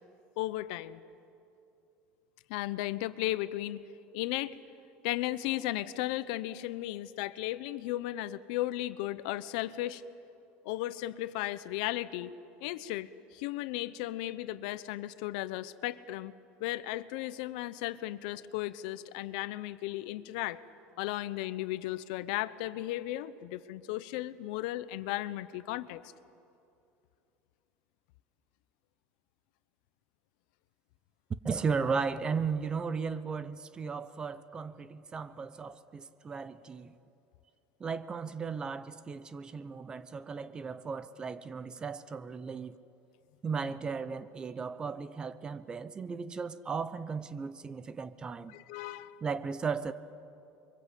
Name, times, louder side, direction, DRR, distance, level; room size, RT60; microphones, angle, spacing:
voice 1, 0.4-1.0 2.5-3.8 4.1-4.6 5.0-10.0 10.6-12.3 12.6-16.3 16.6-20.6 21.0-26.0 48.5-49.2, left 16 dB, 80° left, 15 dB, 0.9 m, -35 dB
voice 2, 31.4-36.9 37.8-42.8 43.4-48.5 49.2-49.9, right 5 dB, 20° right, 14 dB, 0.7 m, -36 dB
28.5 x 23.5 x 8.4 m, 2.7 s
cardioid pair, 160°, 4 cm